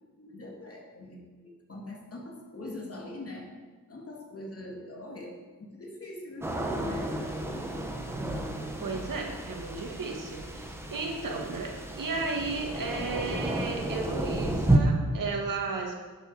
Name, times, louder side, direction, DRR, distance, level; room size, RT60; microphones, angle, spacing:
voice 1, 0.1-3.5 3.9-7.9, left 1 dB, 40° left, 0 dB, 2.7 m, -43 dB
sound 1, 6.4-14.8, right 1 dB, 5° right, 1.4 m, -31 dB
voice 2, 8.8-16.0, right 3 dB, 70° right, 1 dB, 2.1 m, -34 dB
12.0 x 8.5 x 5.1 m, 1.4 s
cardioid pair, 85°, 34 cm